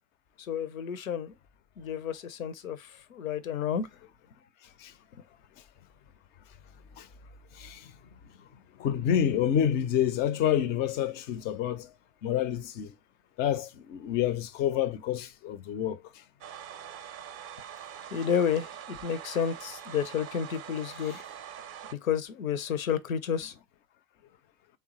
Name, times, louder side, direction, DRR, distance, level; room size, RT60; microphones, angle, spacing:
voice 1, 0.4-1.3 1.8-3.9 18.1-21.2 22.0-23.5, left 8 dB, 80° left, 0.6 m, -31 dB
voice 2, 7.6-7.9 8.8-11.9 12.2-12.9 13.4-16.0, left 10 dB, 25° left, 0.3 m, -28 dB
sound 1, 16.4-21.9, right 9 dB, 30° right, 0.5 m, -44 dB
3.4 x 2.9 x 2.9 m
figure-of-eight pair, 80°, 41 cm